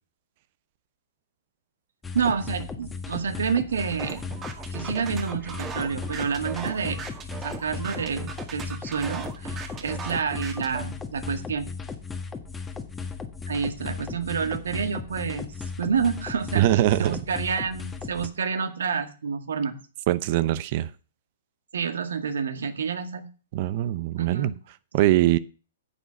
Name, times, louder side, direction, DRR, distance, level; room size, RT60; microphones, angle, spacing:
sound 1, 2.0-18.3, left 5 dB, 10° left, 1.4 m, -36 dB
voice 1, 2.1-4.2 4.7-7.0 7.4-11.7 13.5-15.5 15.8-19.8 21.7-23.3 24.2-24.6, right 6 dB, 70° right, 1.8 m, -29 dB
sound 2, 4.0-10.8, right 6 dB, 20° right, 1.9 m, -38 dB
voice 2, 16.5-17.2 20.1-20.9 23.5-24.5 24.9-25.4, right 14 dB, 45° right, 0.7 m, -22 dB
9.9 x 7.2 x 7.0 m
hypercardioid pair, 120°, 0 cm